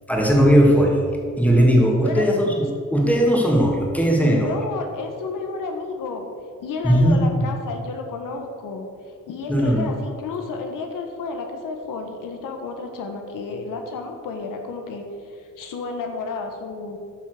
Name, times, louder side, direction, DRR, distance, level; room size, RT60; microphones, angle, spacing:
voice 1, 0.1-1.1 1.4-4.6 6.8-7.4 9.5-9.9, equal, 5° left, -1 dB, 2.4 m, -18 dB
voice 2, 4.2-6.3 6.6-8.9 9.3-17.0, left 4 dB, 85° left, 4 dB, 1.5 m, -31 dB
13.0 x 5.9 x 6.6 m, 2.3 s
cardioid pair, 105°, 32 cm